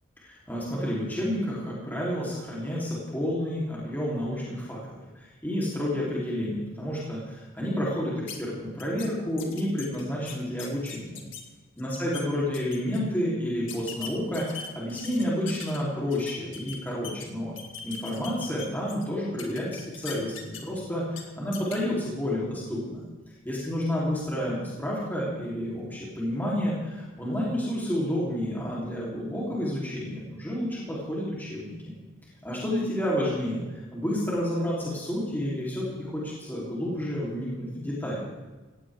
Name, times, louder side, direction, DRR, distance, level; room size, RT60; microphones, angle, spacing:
voice 1, 0.2-4.8 5.1-11.2 11.8-17.5 17.8-23.0 23.4-31.9 32.4-38.2, equal, 10° left, -6 dB, 3.9 m, -30 dB
sound 1, 8.3-8.4 8.8-9.1 9.4-11.4 11.8-12.2 12.5-13.0 13.7-15.8 16.1-17.3 17.6-19.0 19.4-20.8 21.1-21.2 21.5-21.8, left 7 dB, 70° left, 2.5 m, -40 dB
18.5 x 17.0 x 3.8 m, 1.2 s
head